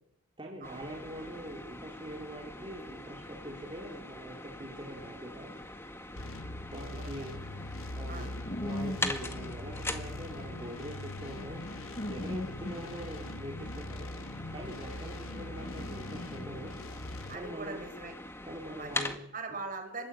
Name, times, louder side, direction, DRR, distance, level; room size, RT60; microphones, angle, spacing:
voice 1, 0.4-5.5 6.7-7.3 7.9-8.3 8.6-11.8 12.1-14.1 14.5-16.7 17.3-17.8 18.4-19.2 19.5-19.6, right 1 dB, 25° right, -2 dB, 4.4 m, -43 dB
sound 1, 0.6-19.2, left 1 dB, 10° left, 2.0 m, -43 dB
sound 2, 6.2-17.4, left 2 dB, 70° left, 1.5 m, -42 dB
voice 2, 6.2-6.7 7.0-7.1 8.1-8.3 17.3-18.1 18.7-19.0 19.3-20.1, right 3 dB, 40° right, 5 dB, 5.5 m, -41 dB
sound 3, 7.1-17.5, left 1 dB, 35° left, 1.2 m, -43 dB
28.0 x 21.5 x 8.8 m, 0.78 s
head